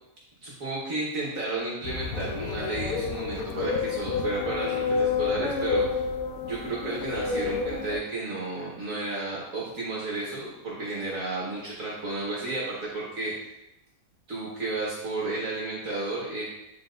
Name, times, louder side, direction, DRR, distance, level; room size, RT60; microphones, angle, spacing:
voice 1, 0.4-5.8 6.4-13.3 14.3-16.4, right 2 dB, 60° right, -5 dB, 1.6 m, -32 dB
sound 1, 1.8-8.0, left 5 dB, 75° left, 1.1 m, -29 dB
9.6 x 4.0 x 2.5 m, 0.87 s
omnidirectional pair, 1.6 m